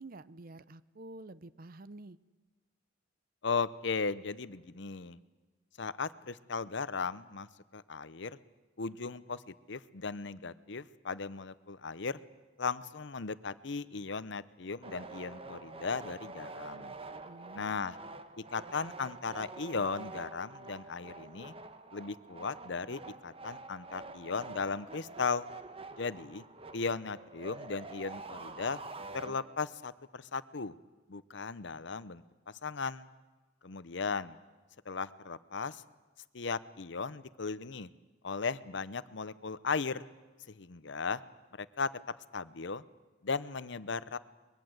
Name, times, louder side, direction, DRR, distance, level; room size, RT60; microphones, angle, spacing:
voice 1, 0.0-2.2 17.2-18.0, right 2 dB, 50° right, 16 dB, 0.7 m, -49 dB
voice 2, 3.4-5.2 5.8-8.4 8.8-12.2 12.6-16.9 17.5-18.0 18.4-21.5 21.9-25.4 26.0-26.4 26.7-28.8 29.1-30.8 31.1-32.2 32.6-33.1 33.6-34.4 34.9-35.8 36.3-37.9 38.2-40.0 40.5-41.2 41.6-41.9 42.3-42.8 43.2-44.2, left 4 dB, 65° left, 15 dB, 0.8 m, -36 dB
sound 1, 14.8-29.8, right 3 dB, 30° right, 1.2 m, -47 dB
23.5 x 21.5 x 8.0 m, 1.3 s
head